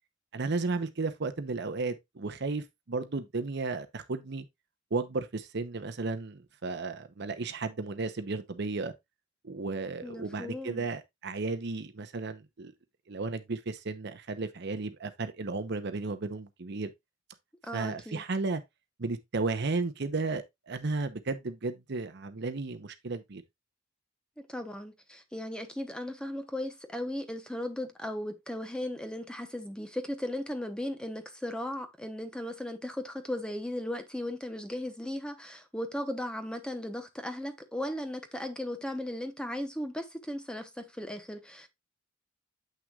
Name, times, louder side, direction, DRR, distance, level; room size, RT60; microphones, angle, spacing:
voice 1, 0.3-4.4 4.9-8.9 9.4-12.7 13.1-16.9 17.7-18.6 19.0-23.4, right 3 dB, 60° right, 0.8 m, -34 dB
voice 2, 10.0-10.9 17.7-18.2 24.4-41.7, left 1 dB, 5° left, 0.8 m, -37 dB
7.9 x 6.1 x 2.3 m
head